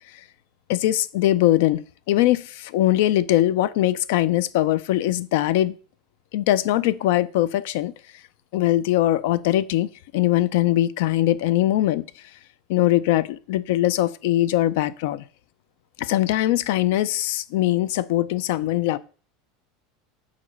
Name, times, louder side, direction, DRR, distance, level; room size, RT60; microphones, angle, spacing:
voice 1, 0.7-5.7 6.3-7.9 8.5-12.0 12.7-15.2 16.0-19.0, left 14 dB, 70° left, 0.4 m, -21 dB
5.0 x 4.1 x 5.9 m
supercardioid pair, 160°, 0 cm